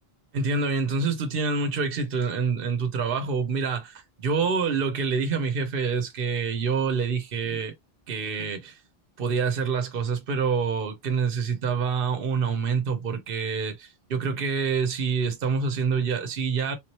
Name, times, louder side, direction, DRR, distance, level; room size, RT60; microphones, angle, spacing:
voice 1, 0.3-7.7 8.1-8.8 9.2-16.8, right 5 dB, 65° right, 1.0 m, -26 dB
3.7 x 3.0 x 2.9 m
omnidirectional pair, 1.0 m